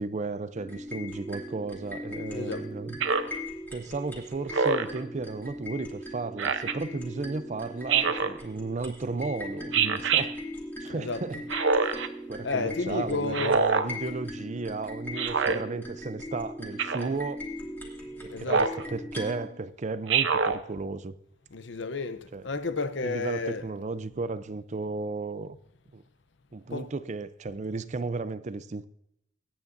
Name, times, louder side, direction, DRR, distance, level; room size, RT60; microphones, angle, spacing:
voice 1, 0.0-3.0 3.7-10.4 10.8-11.4 12.3-17.4 18.2-21.1 22.3-22.5 23.0-25.6 25.9-26.0 26.5-28.9, right 3 dB, 35° right, 0.4 m, -34 dB
sound 1, 0.6-19.5, left 1 dB, 10° left, 2.2 m, -39 dB
voice 2, 2.3-2.6 10.9-11.4 12.4-13.6 18.3-18.7 21.5-23.6 26.7-26.9, left 3 dB, 65° left, 0.7 m, -32 dB
Speech synthesizer, 3.0-3.4 4.5-5.0 6.4-6.8 7.9-8.4 9.7-10.3 11.5-12.1 13.3-13.9 15.2-15.6 16.8-17.1 18.5-18.8 20.1-20.6, right 5 dB, 70° right, 0.7 m, -25 dB
22.5 x 9.5 x 2.6 m
head